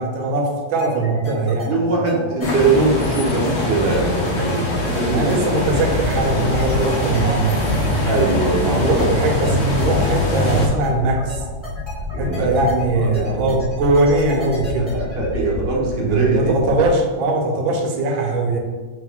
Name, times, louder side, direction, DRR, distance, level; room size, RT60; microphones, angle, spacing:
voice 1, 0.0-1.7 2.0-2.1 5.1-7.7 8.8-11.4 12.1-14.9 16.0-18.6, right 2 dB, 80° right, 3 dB, 1.4 m, -20 dB
sound 1, 0.8-15.5, left 3 dB, 20° left, 1.0 m, -36 dB
voice 2, 1.7-5.4 8.0-9.1 12.1-12.5 13.0-13.5 14.8-16.5, right 3 dB, 60° right, -3 dB, 0.6 m, -21 dB
sound 2, 2.4-10.7, left 1 dB, 90° left, 0.6 m, -22 dB
sound 3, 5.7-16.9, left 3 dB, 70° left, 1.2 m, -30 dB
3.5 x 3.2 x 3.5 m, 1.4 s
omnidirectional pair, 2.1 m